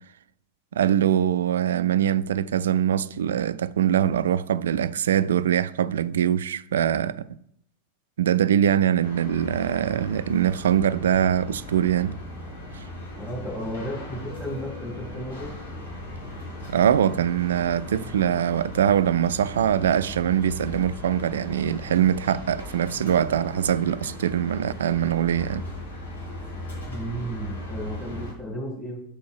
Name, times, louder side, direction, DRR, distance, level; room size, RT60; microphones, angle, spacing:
voice 1, 0.7-7.3 8.2-12.2 12.7-12.8 16.7-25.6, right 9 dB, 65° right, 0.3 m, -23 dB
sound 1, 9.0-28.3, left 1 dB, 70° left, 1.8 m, -38 dB
voice 2, 13.2-15.5 26.9-29.0, equal, ahead, 2.0 m, -33 dB
7.0 x 4.3 x 4.8 m
figure-of-eight pair, 90°, 0 cm